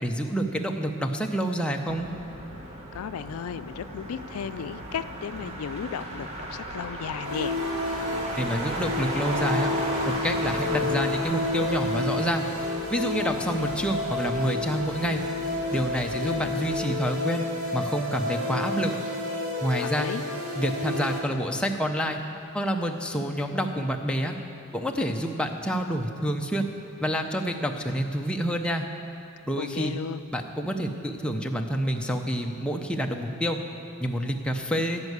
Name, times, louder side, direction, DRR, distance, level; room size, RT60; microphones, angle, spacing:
voice 1, 0.0-2.1 8.4-9.7 10.1-12.5 12.9-15.2 15.7-17.4 17.7-18.9 19.6-20.1 20.6-22.2 22.5-24.3 24.7-26.7 27.0-28.9 29.5-30.0 30.3-33.6 34.0-35.0, equal, 5° left, 2 dB, 0.6 m, -28 dB
Motor vehicle (road), 1.9-16.9, right 1 dB, 30° right, 1.3 m, -36 dB
voice 2, 2.9-7.6 19.7-20.2 29.6-30.2, left 7 dB, 75° left, 12 dB, 0.4 m, -34 dB
sound 1, 7.2-21.2, left 2 dB, 70° right, 2.2 m, -30 dB
15.5 x 5.4 x 8.1 m, 2.7 s
head